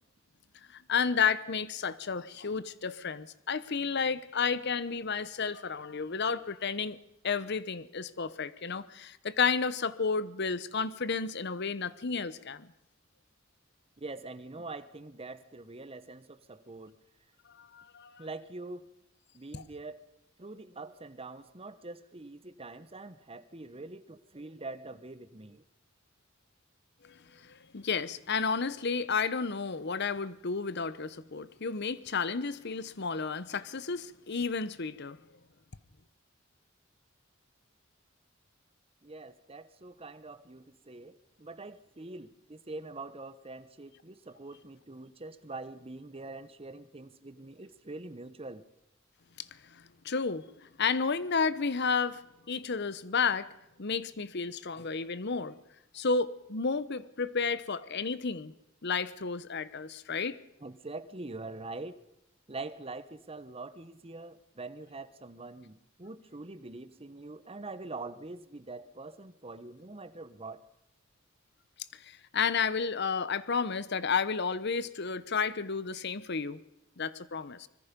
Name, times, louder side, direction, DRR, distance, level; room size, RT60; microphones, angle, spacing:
voice 1, 0.7-7.0 7.2-12.7 17.6-18.2 19.5-19.6 27.0-35.2 49.4-50.5 50.8-52.2 52.5-53.5 53.8-55.6 55.9-58.5 58.8-60.4 72.0-76.6 77.0-77.7, left 5 dB, 55° left, 16 dB, 1.0 m, -32 dB
voice 2, 14.0-17.0 18.2-18.9 19.3-20.0 20.4-25.6 39.0-48.7 60.6-62.0 62.5-70.6, right 3 dB, 30° right, 13 dB, 1.0 m, -44 dB
24.5 x 21.5 x 5.3 m, 0.85 s
head